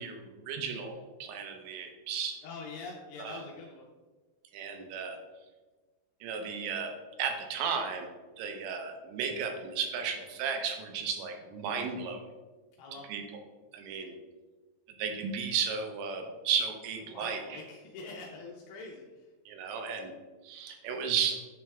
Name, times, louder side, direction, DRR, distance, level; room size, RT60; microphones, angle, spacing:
voice 1, 0.0-2.4 3.2-3.4 4.5-5.2 6.2-6.9 7.2-8.1 8.4-12.3 13.1-13.2 13.7-14.1 15.0-17.6 19.5-20.1 20.4-21.4, right 6 dB, 80° right, 4 dB, 2.9 m, -34 dB
voice 2, 2.4-3.8 12.8-13.2 17.1-19.3, left 3 dB, 85° left, -1 dB, 2.2 m, -44 dB
8.8 x 3.2 x 3.5 m, 1.3 s
omnidirectional pair, 5.3 m